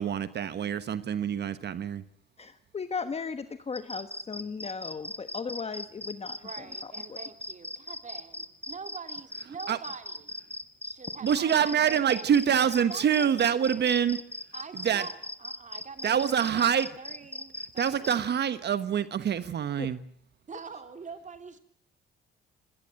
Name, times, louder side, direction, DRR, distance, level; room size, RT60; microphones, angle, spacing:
voice 1, 0.0-2.0 9.7-9.8 11.2-14.2 14.8-15.0 16.0-16.9 17.8-20.0, right 8 dB, 60° right, 13 dB, 1.2 m, -26 dB
voice 2, 2.4-7.2 19.8-19.9, left 5 dB, 30° left, 10 dB, 1.2 m, -37 dB
sound 1, 3.7-18.2, left 1 dB, 10° left, 1.5 m, -39 dB
voice 3, 6.3-10.3 10.8-12.4 12.9-14.1 14.5-18.1 20.5-21.6, right 5 dB, 40° right, 7 dB, 3.2 m, -45 dB
25.5 x 18.0 x 7.7 m, 0.64 s
cardioid pair, 90°, 20 cm